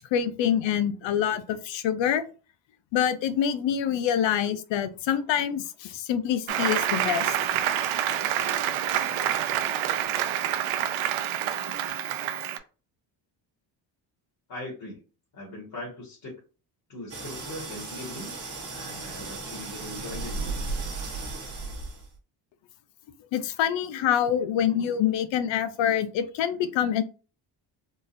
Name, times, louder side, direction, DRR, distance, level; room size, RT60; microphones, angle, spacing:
voice 1, 0.0-2.2 2.9-7.3 23.3-27.0, left 9 dB, 70° left, 12 dB, 0.6 m, -26 dB
Applause, 6.5-12.6, right 11 dB, 75° right, 0.6 m, -27 dB
voice 2, 14.5-15.0 15.3-16.3 16.9-20.6, left 1 dB, 50° left, -4 dB, 1.8 m, -40 dB
sound 1, 17.1-22.2, right 3 dB, 30° right, 1.1 m, -35 dB
3.8 x 2.4 x 2.6 m, 0.35 s
cardioid pair, 85°, 47 cm